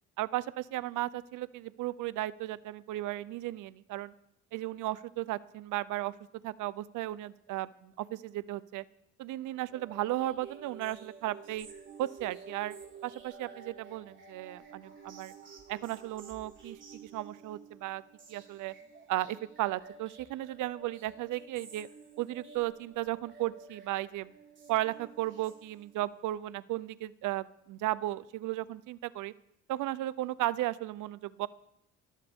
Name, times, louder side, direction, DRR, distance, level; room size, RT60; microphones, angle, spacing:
voice 1, 0.2-4.1 4.5-6.1 6.4-8.8 9.2-11.7 12.0-12.8 13.0-15.3 15.7-18.0 18.3-18.7 19.1-21.9 22.2-24.3 24.7-29.3 29.7-31.5, right 15 dB, 90° right, 18 dB, 0.6 m, -35 dB
sound 1, 9.7-26.1, right 5 dB, 40° right, 4.6 m, -51 dB
21.0 x 15.0 x 3.6 m, 0.78 s
cardioid pair, 90°, 30 cm